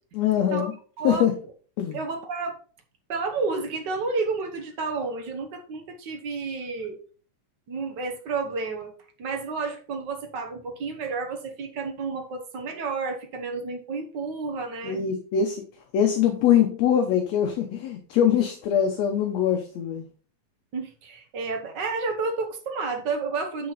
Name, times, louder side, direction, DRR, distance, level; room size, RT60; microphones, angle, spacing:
voice 1, 0.1-0.7 1.0-1.3 1.8-2.0 14.8-15.6 15.9-20.1, left 9 dB, 70° left, 5 dB, 1.9 m, -23 dB
voice 2, 1.9-2.5 3.1-7.0 7.7-8.9 9.2-15.0 20.7-23.7, right 4 dB, 80° right, 5 dB, 0.9 m, -31 dB
8.0 x 6.4 x 4.0 m, 0.41 s
omnidirectional pair, 3.7 m